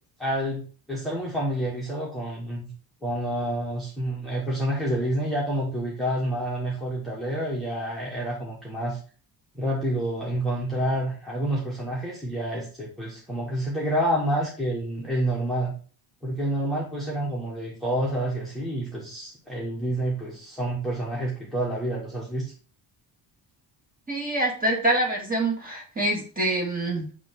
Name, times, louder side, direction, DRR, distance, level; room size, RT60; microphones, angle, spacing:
voice 1, 0.2-2.7 3.0-9.0 9.5-15.7 16.2-22.5, right 1 dB, ahead, -5 dB, 1.5 m, -28 dB
voice 2, 24.1-27.1, right 1 dB, 20° right, -1 dB, 2.3 m, -25 dB
8.5 x 3.2 x 3.8 m, 0.40 s
cardioid pair, 145°, 44 cm